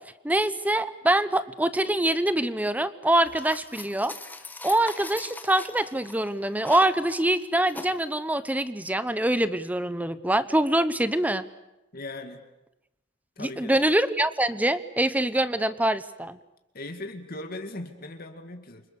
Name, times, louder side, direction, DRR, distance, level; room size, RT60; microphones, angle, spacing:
voice 1, 0.2-4.1 4.6-11.4 13.4-16.4, right 1 dB, 10° right, 14 dB, 0.9 m, -24 dB
sound 1, 3.2-8.0, left 2 dB, 10° left, 1.2 m, -40 dB
voice 2, 11.9-12.4 13.4-13.8 16.7-18.8, left 2 dB, 50° left, 6 dB, 2.3 m, -38 dB
28.5 x 25.5 x 7.0 m, 0.92 s
head